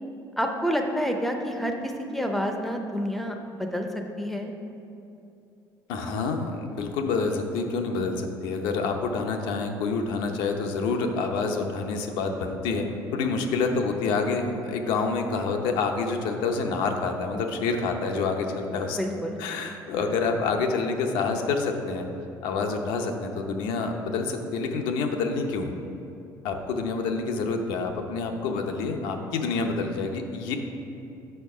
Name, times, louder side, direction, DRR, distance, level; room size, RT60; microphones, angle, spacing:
voice 1, 0.4-3.9 4.2-4.5 19.0-19.4, equal, ahead, 3 dB, 0.5 m, -28 dB
voice 2, 5.9-12.9 13.1-19.0 19.4-22.1 22.4-25.7 26.4-30.6, left 4 dB, 85° left, 4 dB, 0.7 m, -27 dB
6.6 x 4.5 x 5.5 m, 2.8 s
cardioid pair, 155°, 8 cm